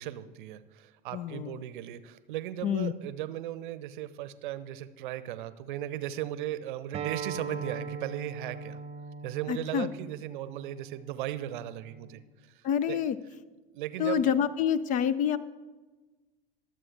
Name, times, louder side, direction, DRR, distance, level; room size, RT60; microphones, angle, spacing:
voice 1, 0.0-8.8 9.2-12.2 12.5-13.0 13.7-14.3, right 12 dB, 55° right, 14 dB, 0.7 m, -37 dB
voice 2, 1.1-1.6 2.6-2.9 9.5-9.9 12.6-13.2 14.0-15.4, left 8 dB, 25° left, 18 dB, 0.4 m, -27 dB
Acoustic guitar, 6.9-12.1, right 5 dB, 20° right, 0.9 m, -40 dB
22.0 x 7.6 x 3.3 m, 1.2 s
figure-of-eight pair, 85°, 30 cm